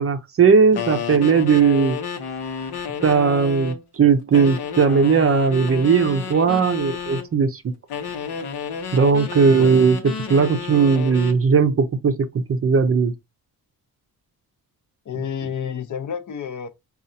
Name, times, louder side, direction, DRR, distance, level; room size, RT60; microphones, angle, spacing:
voice 1, 0.0-2.0 3.0-7.6 8.9-10.0 10.3-12.2 12.5-13.1, right 5 dB, 35° right, 0.6 m, -17 dB
sound 1, 0.7-3.8 4.3-7.3 7.9-11.4, left 6 dB, 80° left, 0.9 m, -31 dB
voice 2, 9.4-9.7 15.1-16.7, left 7 dB, 50° left, 0.7 m, -30 dB
5.3 x 2.4 x 2.6 m
wide cardioid pair, 145°, 38 cm